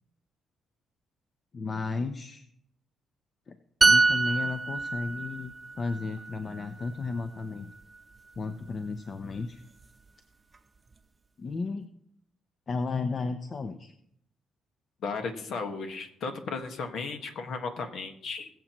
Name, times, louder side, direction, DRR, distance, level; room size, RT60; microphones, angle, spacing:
voice 1, 1.5-2.4 3.5-3.6 3.8-7.7 8.4-9.6 11.4-11.9 12.7-13.9, left 4 dB, 40° left, 8 dB, 0.7 m, -34 dB
sound 1, 3.8-7.4 7.7-8.0, right 3 dB, 25° right, 0.8 m, -26 dB
voice 2, 15.0-18.5, left 4 dB, 70° left, 6 dB, 1.5 m, -35 dB
20.5 x 7.6 x 3.0 m, 0.73 s
cardioid pair, 90°, 0 cm